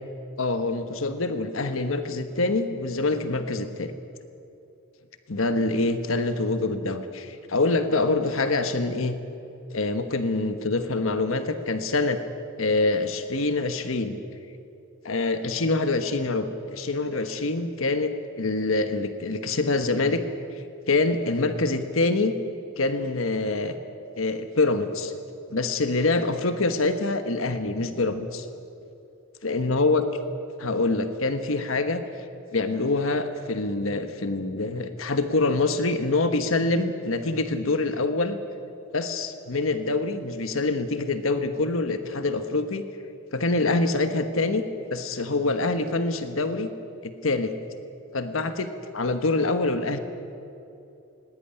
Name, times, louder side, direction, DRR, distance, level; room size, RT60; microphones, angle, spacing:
voice 1, 0.4-3.9 5.3-9.2 9.7-12.2 12.6-14.2 15.0-20.2 20.9-22.3 22.8-23.8 24.2-25.1 25.5-28.5 29.4-30.0 30.6-32.0 32.5-38.4 38.9-42.8 43.3-44.6 44.9-46.7 47.0-47.5 48.1-50.0, left 3 dB, 85° left, 9 dB, 1.3 m, -25 dB
19.5 x 17.5 x 9.9 m, 2.7 s
head